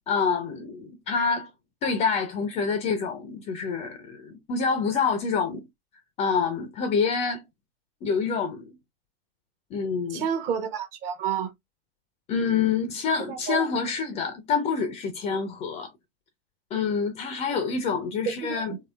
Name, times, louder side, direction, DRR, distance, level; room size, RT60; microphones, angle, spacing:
voice 1, 0.1-1.5 1.8-5.6 6.2-7.4 8.0-8.8 9.7-10.2 12.3-15.9 16.7-18.7, left 5 dB, 20° left, 0.4 m, -27 dB
voice 2, 10.1-11.5 13.2-13.7 18.4-18.8, right 8 dB, 35° right, 0.7 m, -30 dB
2.9 x 2.7 x 2.2 m
hypercardioid pair, 105°, 31 cm